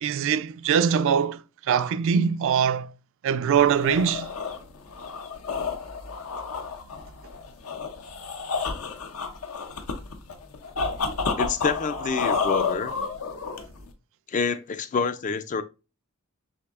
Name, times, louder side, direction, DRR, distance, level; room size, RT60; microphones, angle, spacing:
voice 1, 0.0-1.4 1.7-2.9 3.2-4.3, right 7 dB, 65° right, 0.3 m, -22 dB
sound 1, 3.6-13.9, left 4 dB, 75° left, 0.7 m, -30 dB
voice 2, 11.4-12.9 14.3-15.6, left 5 dB, 35° left, 0.3 m, -27 dB
6.3 x 2.7 x 2.4 m
head